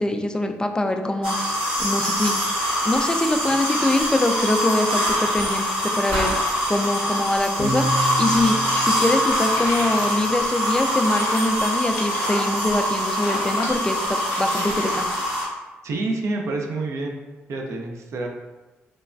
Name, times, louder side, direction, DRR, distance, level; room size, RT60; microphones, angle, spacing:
voice 1, 0.0-1.3 1.8-2.4 2.8-6.3 6.7-7.9 8.2-8.6 8.8-15.1, left 2 dB, 15° left, 5 dB, 0.3 m, -23 dB
sound 1, 1.2-15.4, equal, 85° right, 1.5 m, -24 dB
sound 2, 7.6-10.2, right 1 dB, 30° right, 1.1 m, -31 dB
sound 3, 8.6-8.9 9.2-10.2 10.4-10.5 10.9-12.9 13.2-13.8 14.2-15.3, left 2 dB, 80° left, 0.6 m, -33 dB
voice 2, 15.8-17.2 17.5-18.3, right 2 dB, 60° right, 2 dB, 0.5 m, -27 dB
3.2 x 2.2 x 2.5 m, 1.2 s
hypercardioid pair, 50°, 6 cm